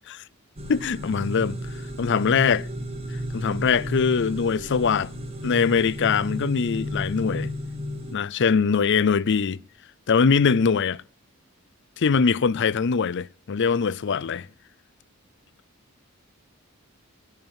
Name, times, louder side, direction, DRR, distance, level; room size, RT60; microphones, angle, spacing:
sound 1, 0.6-8.1, equal, 30° right, 2.0 m, -33 dB
voice 1, 0.7-1.6 2.0-2.7 3.3-5.1 5.4-7.5 8.1-9.6 10.1-11.0 12.0-14.5, left 5 dB, 55° left, 0.5 m, -22 dB
14.5 x 5.7 x 8.8 m
head